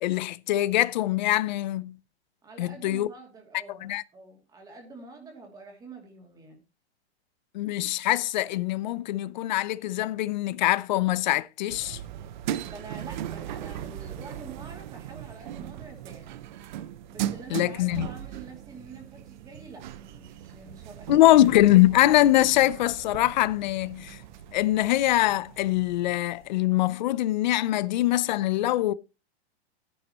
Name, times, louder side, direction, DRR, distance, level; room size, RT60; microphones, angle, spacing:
voice 1, 0.0-2.0 2.6-3.1 3.8-4.0 7.5-12.0 17.5-18.1 21.1-24.2 24.5-28.9, left 15 dB, 45° left, 0.6 m, -23 dB
voice 2, 2.4-6.6 12.6-16.3 17.1-21.2, right 3 dB, 10° right, 2.6 m, -46 dB
sound 1, 11.7-26.5, right 11 dB, 45° right, 0.7 m, -38 dB
13.5 x 10.5 x 3.0 m
supercardioid pair, 165°, 33 cm